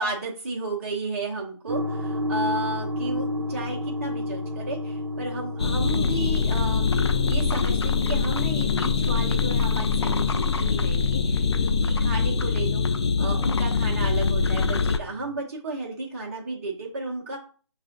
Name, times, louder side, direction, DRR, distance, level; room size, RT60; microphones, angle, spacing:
voice 1, 0.0-6.9 7.3-12.8 13.2-17.4, right 2 dB, 30° right, -4 dB, 0.7 m, -33 dB
sound 1, 1.7-15.3, left 1 dB, 75° right, 0.9 m, -34 dB
sound 2, 5.6-15.0, left 5 dB, 55° left, 0.4 m, -23 dB
6.5 x 2.4 x 2.5 m, 0.39 s
hypercardioid pair, 170°, 16 cm